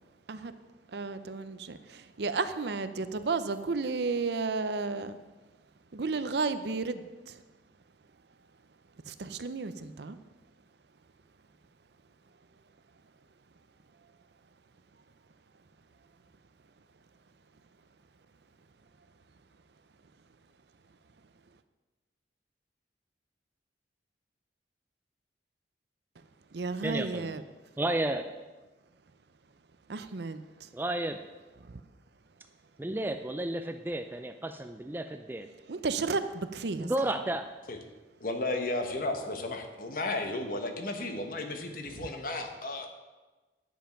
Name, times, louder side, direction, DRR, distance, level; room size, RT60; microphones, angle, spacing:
voice 1, 0.9-5.2 5.9-7.4 9.0-10.2 26.5-27.4 29.9-30.7 31.6-31.8 35.6-37.1 41.8-42.1, right 4 dB, 70° right, 11 dB, 0.6 m, -33 dB
voice 2, 26.8-27.3 27.8-28.2 30.7-31.2 32.8-35.5 36.8-37.4, right 1 dB, 10° right, 8 dB, 0.4 m, -32 dB
voice 3, 38.2-42.9, left 2 dB, 50° left, 5 dB, 1.2 m, -34 dB
10.0 x 7.2 x 5.7 m, 1.2 s
head